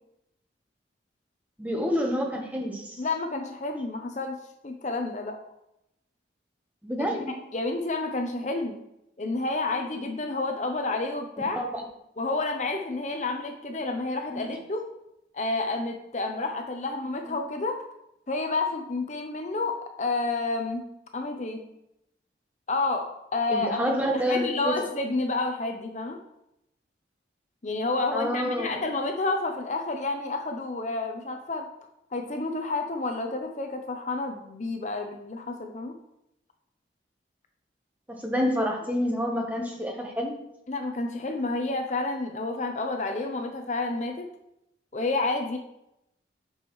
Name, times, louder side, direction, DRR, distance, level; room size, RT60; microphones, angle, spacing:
voice 1, 1.6-3.0 6.8-7.3 11.5-11.8 14.3-14.5 17.3-17.4 23.5-24.8 28.1-28.8 38.2-40.3, equal, 10° right, 0 dB, 1.1 m, -28 dB
voice 2, 3.0-4.4 4.6-5.4 7.0-7.1 7.5-8.8 9.2-11.6 12.2-14.8 15.3-17.8 18.3-20.8 21.1-21.6 22.7-26.2 27.6-31.7 32.1-35.9 40.7-44.3 44.9-45.6, left 3 dB, 40° left, 4 dB, 0.6 m, -30 dB
8.6 x 6.1 x 3.1 m, 0.84 s
head